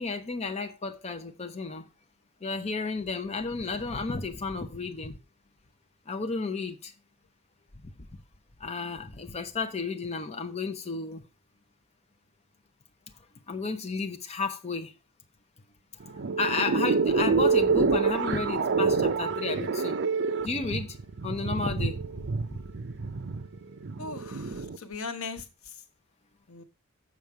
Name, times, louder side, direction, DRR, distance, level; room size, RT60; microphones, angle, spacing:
voice 1, 0.0-1.9 2.4-5.2 6.1-6.9 7.8-7.9 8.6-11.3 13.5-14.9 16.0-20.0 20.4-21.0 21.2-22.0 22.5-22.6, left 4 dB, 30° left, 0.7 m, -32 dB
sound 1, 16.0-24.8, right 4 dB, 55° right, 0.6 m, -27 dB
voice 2, 24.0-25.8 26.5-26.6, left 4 dB, 70° left, 1.1 m, -39 dB
7.2 x 6.4 x 4.7 m
head